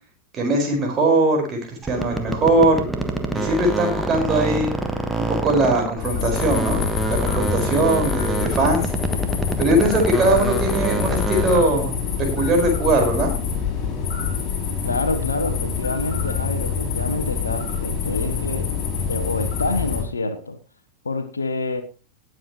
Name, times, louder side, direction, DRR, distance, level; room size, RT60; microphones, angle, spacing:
voice 1, 0.3-2.9 3.3-4.7 5.2-6.8 7.1-8.8 9.6-12.0 12.4-13.3, right 2 dB, 25° right, 4.8 m, -20 dB
sound 1, 1.8-6.0 6.3-11.7, right 2 dB, 5° right, 1.4 m, -26 dB
sound 2, 6.0-20.0, left 6 dB, 30° left, 5.2 m, -26 dB
voice 2, 14.8-18.7 19.1-20.6 21.0-21.8, left 3 dB, 75° left, 1.2 m, -27 dB
19.0 x 7.8 x 3.0 m
figure-of-eight pair, 90°, 0 cm